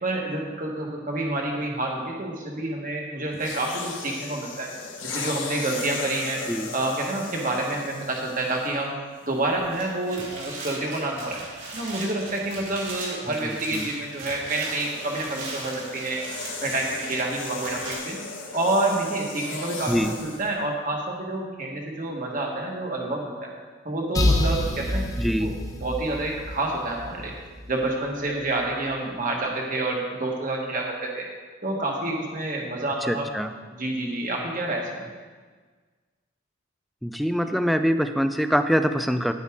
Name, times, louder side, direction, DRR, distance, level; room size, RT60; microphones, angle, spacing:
voice 1, 0.0-4.7 5.0-6.4 6.7-8.9 9.3-11.4 11.7-16.2 16.6-18.2 18.5-19.9 20.2-23.5 23.8-25.0 25.4-25.5 25.8-27.3 27.7-31.3 31.6-33.3 33.8-35.1, right 2 dB, 40° right, 0 dB, 1.6 m, -28 dB
sound 1, 3.3-8.9 9.7-9.9 13.8-20.5, left 4 dB, 70° left, 1.3 m, -37 dB
sound 2, 9.6-18.0, right 2 dB, 70° right, 2.9 m, -39 dB
voice 2, 13.4-13.9 19.9-20.2 25.2-25.6 33.0-33.5 37.0-39.3, equal, ahead, 8 dB, 0.3 m, -24 dB
sound 3, 24.1-27.8, left 1 dB, 15° left, 0.8 m, -27 dB
10.0 x 9.5 x 3.7 m, 1.5 s
head